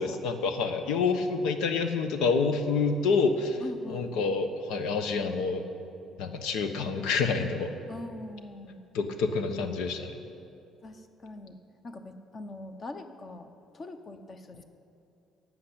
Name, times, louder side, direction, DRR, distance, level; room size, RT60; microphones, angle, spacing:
voice 1, 0.0-5.6 6.2-7.7 8.9-10.2, left 4 dB, 85° left, 7 dB, 1.2 m, -28 dB
voice 2, 3.6-4.3 7.9-8.8 10.8-11.6 11.8-13.5 13.7-14.6, left 2 dB, 25° left, 8 dB, 0.8 m, -42 dB
12.0 x 7.6 x 9.8 m, 2.7 s
cardioid pair, 175°, 0 cm